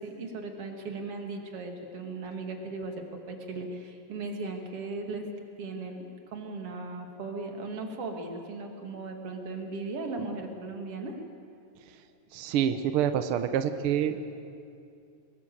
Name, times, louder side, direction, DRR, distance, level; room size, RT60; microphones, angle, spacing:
voice 1, 0.0-5.2 5.6-6.1 6.3-11.2, right 3 dB, 50° right, 4 dB, 3.0 m, -37 dB
voice 2, 12.3-14.2, right 9 dB, 75° right, 9 dB, 1.2 m, -27 dB
24.0 x 21.0 x 7.8 m, 2.5 s
omnidirectional pair, 3.7 m